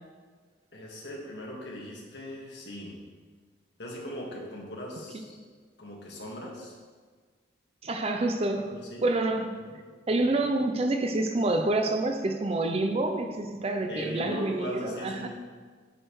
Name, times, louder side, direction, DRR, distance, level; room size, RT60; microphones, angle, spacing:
voice 1, 0.7-3.0 3.8-5.3 5.8-6.8 8.6-9.1 9.6-9.7 13.9-15.3, equal, 60° left, -3 dB, 1.7 m, -39 dB
voice 2, 7.8-8.8 9.0-9.6 10.1-15.3, right 2 dB, 30° right, 6 dB, 0.5 m, -27 dB
8.9 x 6.5 x 3.1 m, 1.5 s
head